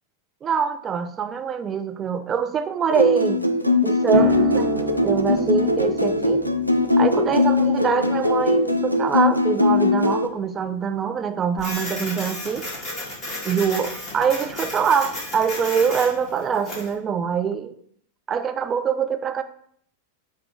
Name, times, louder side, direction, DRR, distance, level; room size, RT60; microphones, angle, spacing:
voice 1, 0.4-3.4 3.8-6.4 7.0-12.7 13.4-17.8 18.3-19.4, right 7 dB, 25° right, 8 dB, 0.4 m, -24 dB
sound 1, 2.9-10.3, left 2 dB, 90° right, 0.3 m, -20 dB
sound 2, 4.1-11.3, right 5 dB, 45° right, 0.8 m, -33 dB
Printer, 11.6-16.9, left 1 dB, 25° left, 1.9 m, -33 dB
6.5 x 2.2 x 3.7 m, 0.64 s
figure-of-eight pair, 90°, 0 cm